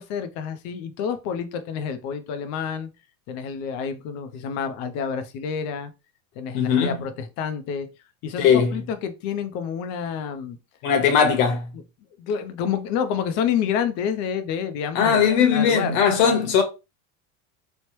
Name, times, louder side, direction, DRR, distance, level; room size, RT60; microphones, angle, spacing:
voice 1, 0.0-2.9 3.3-5.9 6.4-7.9 8.2-8.4 8.7-10.6 12.2-15.2 15.5-16.0, left 7 dB, 40° left, 0.4 m, -28 dB
voice 2, 6.5-7.0 8.4-8.8 10.8-11.7 14.9-16.6, left 7 dB, 55° left, 1.0 m, -19 dB
3.2 x 2.0 x 3.0 m
supercardioid pair, 145°, 43 cm